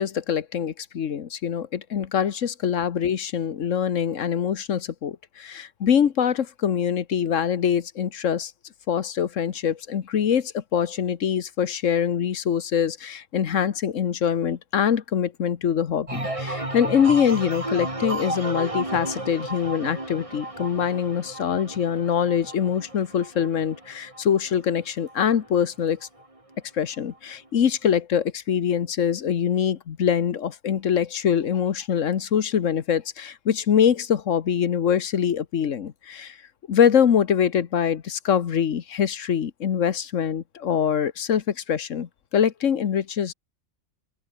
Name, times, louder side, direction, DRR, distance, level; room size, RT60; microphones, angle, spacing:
voice 1, 0.0-8.5 8.9-26.0 26.7-36.4 36.7-43.3, left 8 dB, 75° left, 1.4 m, -24 dB
sound 1, 16.1-25.6 26.0-26.5, right 2 dB, 25° right, 3.0 m, -33 dB
open air
omnidirectional pair, 1.3 m